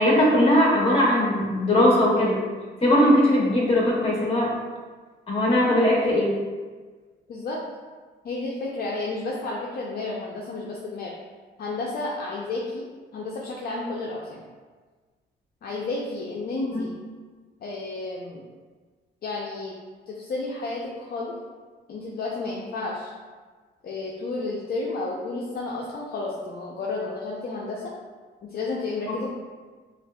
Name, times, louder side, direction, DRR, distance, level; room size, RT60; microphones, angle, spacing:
voice 1, 0.0-2.4 2.8-4.5 5.3-6.4 16.7-16.9 29.1-29.2, left 1 dB, 30° left, -3 dB, 1.3 m, -20 dB
voice 2, 7.3-7.6 8.2-11.1 11.6-12.9 13.1-14.4 15.6-16.9 17.6-18.4 19.2-19.7 20.1-21.3 21.9-23.1 23.8-27.9 28.4-29.3, left 3 dB, 50° left, -3 dB, 0.6 m, -31 dB
5.7 x 2.5 x 2.3 m, 1.4 s
cardioid pair, 90°, 20 cm